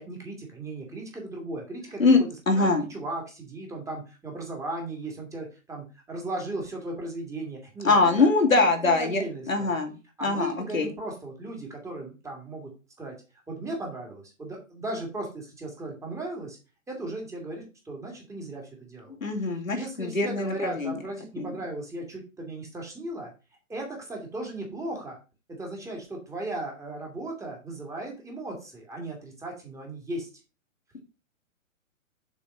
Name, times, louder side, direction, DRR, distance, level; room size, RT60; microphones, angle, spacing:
voice 1, 0.0-2.1 2.6-8.3 8.6-9.8 10.2-12.7 13.0-13.2 13.5-16.6 16.9-19.5 19.7-23.3 23.7-25.2 25.6-30.3, right 2 dB, 5° right, 0 dB, 2.1 m, -36 dB
voice 2, 2.5-2.8 7.8-9.2 9.5-10.0 10.2-10.9 19.2-20.9 21.4-21.5 30.9-31.0, left 3 dB, 75° left, 3 dB, 2.5 m, -23 dB
7.1 x 4.6 x 6.5 m, 0.31 s
figure-of-eight pair, 120°, 40 cm